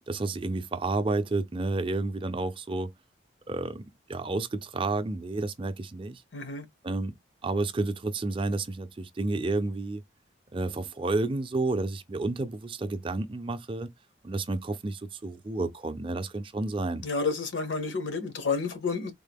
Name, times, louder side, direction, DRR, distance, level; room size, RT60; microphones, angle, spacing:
voice 1, 0.1-2.9 3.5-6.2 6.8-7.2 7.4-10.0 10.5-13.9 14.2-17.0, right 2 dB, 25° right, 0.4 m, -30 dB
voice 2, 6.3-6.6 17.0-19.1, left 4 dB, 80° left, 1.0 m, -30 dB
3.7 x 2.1 x 3.5 m
head